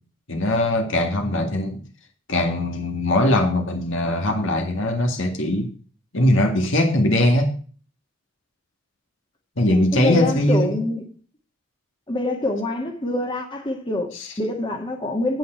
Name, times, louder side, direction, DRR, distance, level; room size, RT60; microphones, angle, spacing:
voice 1, 0.3-1.8 2.3-5.7 6.1-7.5 9.6-10.8 14.1-14.3, left 1 dB, 65° left, 2.1 m, -21 dB
voice 2, 9.7-11.1 12.1-15.4, left 2 dB, 25° left, 1.9 m, -25 dB
9.1 x 9.0 x 4.5 m
head